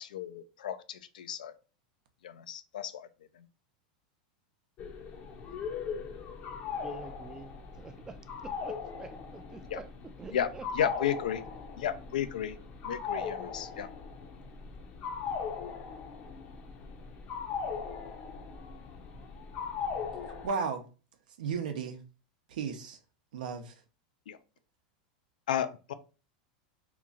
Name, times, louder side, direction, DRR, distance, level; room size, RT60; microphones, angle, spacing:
voice 1, 0.0-1.5 2.2-3.1 3.3-3.5 9.7-9.8 10.3-10.5 10.7-11.4 11.8-12.6 12.8-13.9 24.3-24.4 25.5-25.9, left 9 dB, 90° left, 0.4 m, -33 dB
sound 1, 4.8-20.5, left 6 dB, 40° left, 0.6 m, -39 dB
voice 2, 6.8-7.5 7.8-9.9 10.2-10.7, right 4 dB, 15° right, 0.4 m, -47 dB
voice 3, 20.4-20.8 21.4-22.0 22.5-23.0 23.3-23.7, right 5 dB, 80° right, 0.7 m, -34 dB
2.9 x 2.4 x 3.8 m
supercardioid pair, 130°, 4 cm